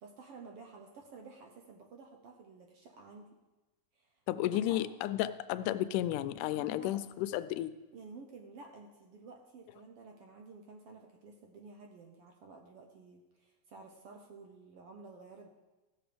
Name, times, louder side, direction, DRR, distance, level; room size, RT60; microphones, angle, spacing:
voice 1, 0.0-3.3 3.9-4.1 4.5-4.8 6.5-7.0 7.9-15.5, right 4 dB, 65° right, 2 dB, 1.5 m, -52 dB
voice 2, 4.3-7.7, left 13 dB, 90° left, 13 dB, 2.1 m, -33 dB
15.0 x 6.9 x 5.1 m, 1.1 s
omnidirectional pair, 3.5 m